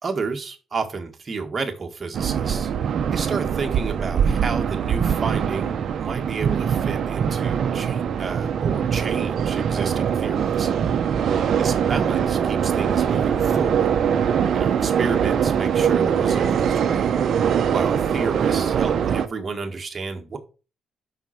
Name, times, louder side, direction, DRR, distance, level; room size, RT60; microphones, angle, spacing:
voice 1, 0.0-11.0 11.6-13.9 14.5-17.4 17.7-20.4, right 4 dB, 35° right, 4 dB, 1.8 m, -31 dB
sound 1, 2.1-19.3, right 8 dB, 60° right, 0.8 m, -22 dB
5.8 x 5.4 x 5.9 m, 0.34 s
cardioid pair, 90°, 0 cm